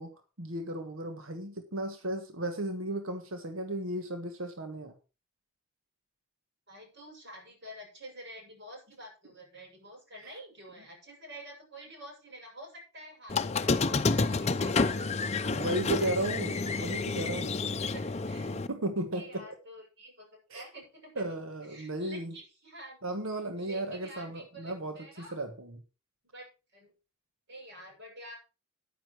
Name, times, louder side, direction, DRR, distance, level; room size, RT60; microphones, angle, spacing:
voice 1, 0.0-4.9 14.8-15.1 15.5-17.6 18.7-19.5 20.5-20.6 21.1-22.4 23.0-25.8, right 1 dB, 85° right, 1.6 m, -35 dB
voice 2, 6.7-15.6 16.0-16.1 16.6-17.1 17.8-18.6 19.1-20.3 20.5-21.4 21.7-23.0 23.5-25.4 26.3-26.5 26.7-26.9 27.5-28.4, right 1 dB, 55° right, 6.7 m, -48 dB
Squeak, 13.3-18.7, left 3 dB, 30° left, 0.6 m, -29 dB
10.0 x 9.5 x 4.6 m
head